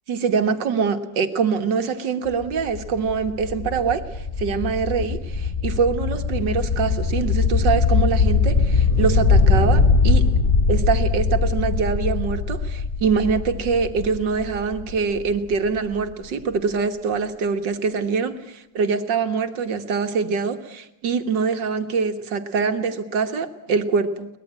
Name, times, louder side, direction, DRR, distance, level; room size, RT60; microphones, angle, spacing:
voice 1, 0.1-4.0 4.4-10.3 10.7-24.3, right 5 dB, 70° right, 7 dB, 2.1 m, -24 dB
sound 1, 2.3-16.0, left 4 dB, 30° left, 1.7 m, -21 dB
23.0 x 20.0 x 8.7 m, 0.84 s
omnidirectional pair, 2.0 m